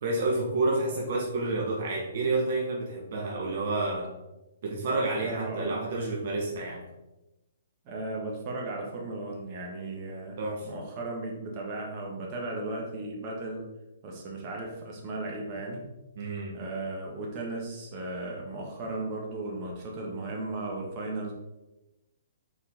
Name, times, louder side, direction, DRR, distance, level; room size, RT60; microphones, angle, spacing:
voice 1, 0.0-4.1 4.6-6.8 10.4-10.7 16.1-16.6, right 2 dB, 55° right, -2 dB, 1.5 m, -29 dB
voice 2, 5.2-5.8 7.8-10.4 10.6-13.6 14.0-15.8 16.5-21.3, right 2 dB, 35° right, -1 dB, 1.6 m, -36 dB
6.1 x 4.8 x 3.7 m, 1.0 s
figure-of-eight pair, 125°, 0 cm